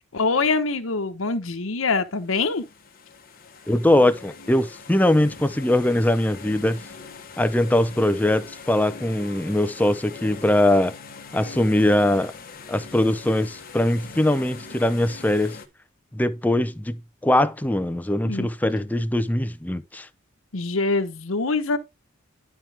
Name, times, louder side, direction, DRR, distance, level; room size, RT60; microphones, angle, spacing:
voice 1, 0.1-2.6 18.2-18.5 20.5-21.8, left 3 dB, 85° left, 1.0 m, -24 dB
sound 1, 2.2-15.7, left 4 dB, 45° left, 1.3 m, -42 dB
voice 2, 3.7-6.8 7.4-10.9 11.3-12.3 12.7-15.6 16.1-20.1, left 1 dB, 10° left, 0.5 m, -21 dB
11.5 x 4.5 x 3.4 m
head